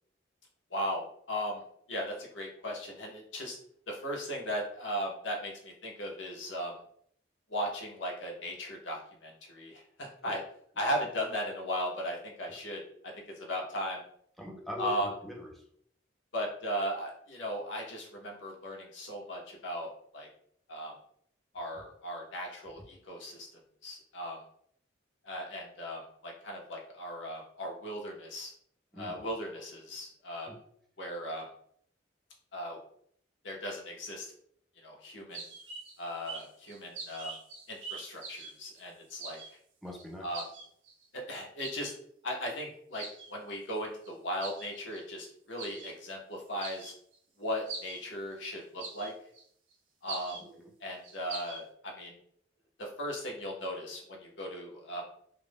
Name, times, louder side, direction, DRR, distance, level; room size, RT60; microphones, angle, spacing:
voice 1, 0.7-1.6 1.9-3.6 3.9-6.8 7.5-10.4 10.8-12.8 13.4-14.0 14.8-15.1 16.3-20.3 20.7-20.9 21.5-23.5 23.8-24.4 25.2-28.5 29.0-30.5 31.0-31.5 32.5-32.8 33.4-34.3 34.8-35.4 36.0-37.3 37.7-39.4 40.2-40.5 41.1-41.9 42.2-43.0 43.3-46.9 47.4-49.1 50.0-50.4 50.8-52.2 52.8-55.0, equal, 80° left, 0 dB, 0.7 m, -37 dB
voice 2, 14.4-15.5 28.9-29.2 30.5-30.6 39.8-40.3 50.4-50.7, left 1 dB, ahead, -1 dB, 0.3 m, -42 dB
sound 1, 35.3-36.0 36.3-38.8 39.1-39.5 40.0-40.1 40.3-41.0 41.6-41.9 42.4-42.5 42.9-43.3 44.0-44.1 44.4-45.0 45.6-45.9 46.4-47.2 47.7-48.0 48.4-48.5 48.8-49.4 49.7-49.8 50.1-50.4 50.9-51.6, right 4 dB, 85° right, 0.6 m, -43 dB
2.4 x 2.0 x 3.3 m, 0.66 s
head